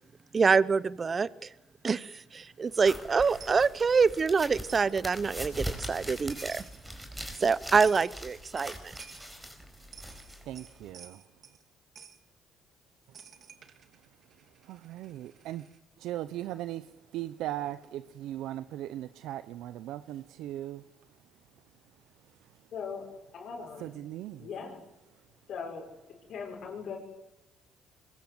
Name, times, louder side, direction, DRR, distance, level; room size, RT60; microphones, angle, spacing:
voice 1, 0.3-1.5 1.8-6.6 7.4-8.9, right 5 dB, 30° right, 19 dB, 0.8 m, -26 dB
sound 1, 2.7-10.9, equal, 5° right, 4.7 m, -42 dB
Coin (dropping), 3.4-3.7 4.7-4.9 6.0-6.1 6.3-6.8 7.8-8.1 8.6-9.3 9.8-11.6 12.0-12.2 13.1-15.8, right 7 dB, 50° right, 2.5 m, -51 dB
voice 2, 10.5-11.2 14.6-15.6 16.0-20.9 22.4-22.5 23.8-24.5, right 13 dB, 80° right, 13 dB, 0.8 m, -38 dB
voice 3, 22.7-23.0 23.3-23.9 24.4-24.8 25.5-25.9 26.3-27.0, left 6 dB, 60° left, -2 dB, 5.6 m, -39 dB
23.0 x 21.0 x 7.9 m, 0.96 s
cardioid pair, 100°, 0 cm